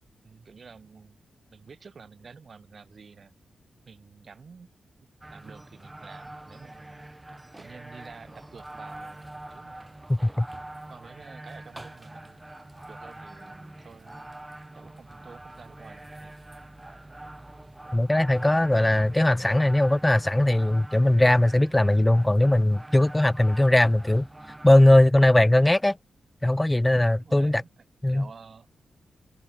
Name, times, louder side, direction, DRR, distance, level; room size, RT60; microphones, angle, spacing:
voice 1, 0.2-1.2 1.5-3.3 3.8-4.7 5.3-7.0 7.6-10.0 10.9-12.4 12.9-14.3 14.7-16.4 27.2-28.7, right 5 dB, 55° right, 4.7 m, -49 dB
sound 1, 5.2-24.9, right 1 dB, 20° right, 5.9 m, -44 dB
voice 2, 10.1-10.5 17.9-24.3 24.6-26.0 26.4-27.6 28.0-28.3, left 1 dB, 15° left, 0.8 m, -20 dB
supercardioid pair, 50°, 0 cm